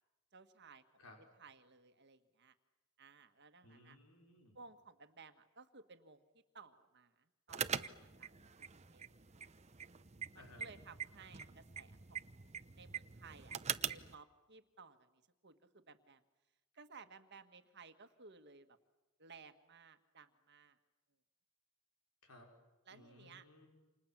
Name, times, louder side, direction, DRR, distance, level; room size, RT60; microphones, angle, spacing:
voice 1, 0.3-0.8 1.4-2.5 3.0-4.0 4.5-8.3 8.7-9.1 10.3-12.4 12.7-13.6 13.9-15.1 15.4-16.2 16.7-18.8 19.2-20.8 22.8-23.4, right 4 dB, 50° right, 9 dB, 1.6 m, -59 dB
voice 2, 3.6-4.6 10.3-10.7 22.2-22.5 22.9-23.7, left 2 dB, 80° left, 2 dB, 5.4 m, -60 dB
sound 1, 7.5-14.1, right 7 dB, 30° right, 0.8 m, -44 dB
29.0 x 27.5 x 7.5 m, 1.1 s
head